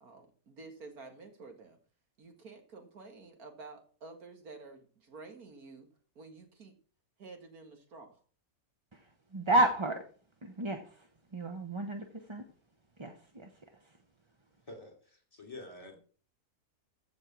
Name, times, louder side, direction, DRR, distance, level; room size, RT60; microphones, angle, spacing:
voice 1, 0.0-1.8 2.2-5.9 6.2-6.7 7.2-8.2, right 3 dB, 75° right, 5 dB, 2.3 m, -50 dB
voice 2, 9.3-10.0 10.4-11.1 11.3-12.4 13.0-13.5, right 1 dB, 25° right, 5 dB, 0.8 m, -31 dB
voice 3, 14.7-16.0, left 2 dB, 20° left, 2 dB, 3.2 m, -48 dB
15.0 x 5.4 x 6.1 m, 0.41 s
omnidirectional pair, 1.6 m